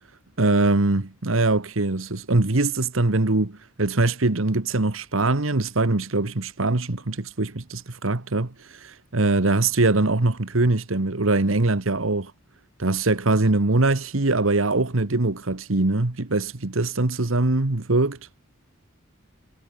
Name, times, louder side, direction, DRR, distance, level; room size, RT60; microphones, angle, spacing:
voice 1, 0.4-8.5 8.8-12.3 12.8-18.2, right 2 dB, 80° right, 1.5 m, -22 dB
head